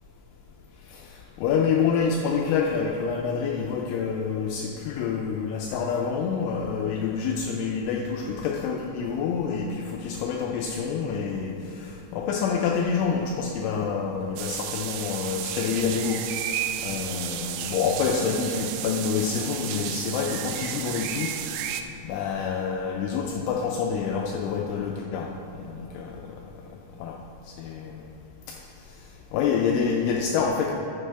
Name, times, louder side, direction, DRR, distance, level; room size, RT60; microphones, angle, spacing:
voice 1, 0.9-16.2 16.8-21.6 22.1-25.3 25.6-26.2 27.0-27.2 27.6-28.0 28.5-28.6 29.3-30.7, left 6 dB, 85° left, 0 dB, 2.8 m, -27 dB
sound 1, 14.4-21.8, right 11 dB, 90° right, 3.2 m, -33 dB
12.5 x 7.5 x 3.3 m, 2.6 s
omnidirectional pair, 5.9 m